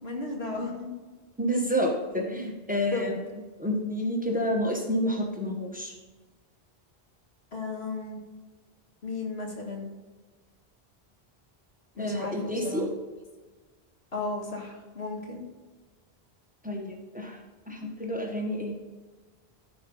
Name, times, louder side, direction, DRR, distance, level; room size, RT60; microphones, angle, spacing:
voice 1, 0.0-0.9 2.9-3.2 7.5-8.2 9.0-9.9 11.9-12.9 14.1-15.4, left 3 dB, 90° left, 0 dB, 2.2 m, -34 dB
voice 2, 1.4-3.1 3.6-5.9 12.0-12.9 16.6-17.4 17.7-18.7, equal, 10° right, 1 dB, 1.3 m, -29 dB
13.5 x 4.8 x 5.4 m, 1.3 s
omnidirectional pair, 1.0 m